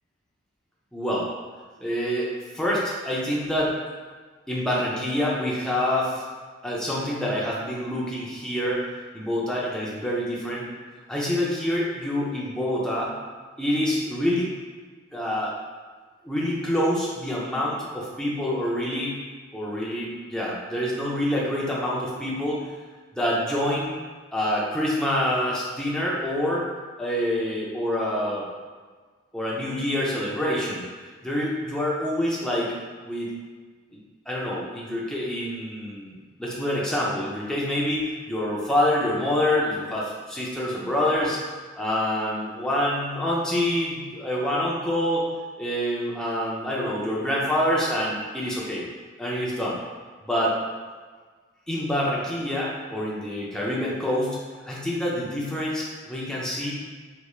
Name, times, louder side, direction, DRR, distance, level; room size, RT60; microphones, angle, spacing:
voice 1, 0.9-1.3 1.8-2.3 2.5-3.8 4.5-6.2 6.6-8.9 9.1-10.7 11.1-13.1 13.6-14.5 15.1-15.5 16.2-19.2 19.5-22.6 23.1-23.9 24.3-26.7 27.0-28.5 29.3-30.8 31.2-32.7 33.0-33.3 34.3-41.4 41.8-45.3 45.6-48.8 49.2-49.8 50.2-50.6 51.7-54.4 54.7-56.7, left 1 dB, 5° left, -6 dB, 0.5 m, -26 dB
3.3 x 3.0 x 2.3 m, 1.5 s
head